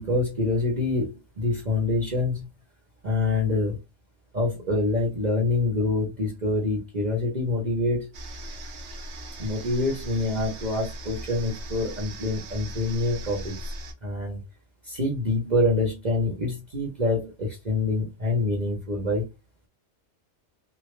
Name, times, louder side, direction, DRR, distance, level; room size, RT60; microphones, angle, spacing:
voice 1, 0.0-2.4 3.0-3.8 4.3-8.1 9.4-13.7 14.0-14.4 14.8-19.2, left 2 dB, 40° right, -1 dB, 1.0 m, -26 dB
sound 1, 8.1-13.9, right 1 dB, 70° right, 0.9 m, -38 dB
3.3 x 2.2 x 3.2 m, 0.24 s
omnidirectional pair, 1.2 m